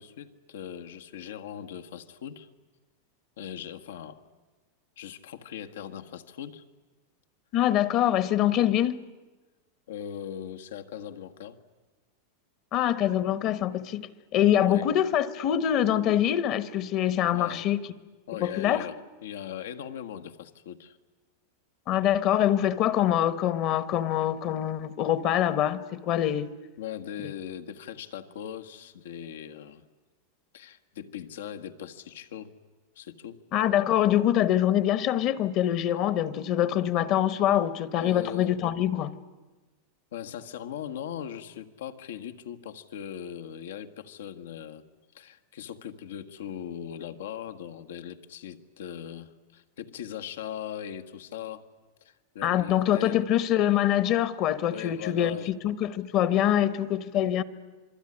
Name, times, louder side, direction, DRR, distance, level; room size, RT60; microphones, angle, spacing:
voice 1, 0.0-2.5 3.4-4.2 5.0-6.6 9.9-11.6 14.6-14.9 17.3-17.7 18.3-21.0 22.7-22.8 26.8-29.8 30.5-32.5 32.9-33.4 38.0-38.5 40.1-44.8 45.1-51.7 52.0-53.2 54.6-55.5, left 9 dB, 85° left, 1.5 m, -39 dB
voice 2, 7.5-9.0 12.7-17.8 18.4-18.8 21.9-26.5 33.5-39.1 52.4-57.4, left 11 dB, 35° left, 1.0 m, -24 dB
27.5 x 22.0 x 9.9 m
supercardioid pair, 160°, 0 cm